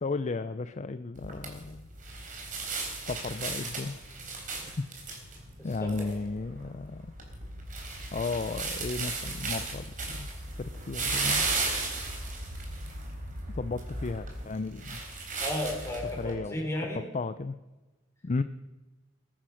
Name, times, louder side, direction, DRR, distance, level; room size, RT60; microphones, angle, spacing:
voice 1, 0.0-1.9 2.9-3.9 4.8-4.9 5.6-7.1 8.1-10.3 10.6-11.5 13.6-15.0 16.2-17.6 18.2-18.4, left 3 dB, 35° left, 12 dB, 0.5 m, -34 dB
sound 1, 1.2-16.3, right 3 dB, 45° right, 3.7 m, -35 dB
voice 2, 15.4-17.0, left 1 dB, 15° left, -1 dB, 4.6 m, -33 dB
20.0 x 10.0 x 6.3 m, 1.1 s
head